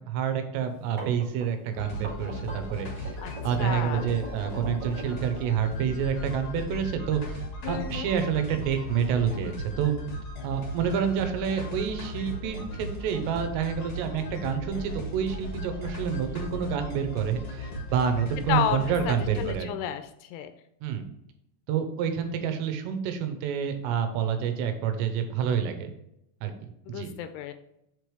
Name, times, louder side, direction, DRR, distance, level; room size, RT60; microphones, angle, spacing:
voice 1, 0.1-3.2 3.4-9.9 10.4-19.7 20.8-21.0 21.7-25.9 26.4-27.1, right 8 dB, 85° right, 7 dB, 3.0 m, -28 dB
sound 1, 0.7-5.9, right 2 dB, 50° right, 1.3 m, -41 dB
sound 2, 1.8-19.5, left 1 dB, 65° left, 1.3 m, -37 dB
voice 2, 3.6-4.1 7.6-8.1 18.5-18.8 19.1-20.5 26.9-27.5, left 10 dB, 85° left, 9 dB, 2.5 m, -31 dB
7.3 x 4.6 x 3.4 m, 0.80 s
omnidirectional pair, 4.9 m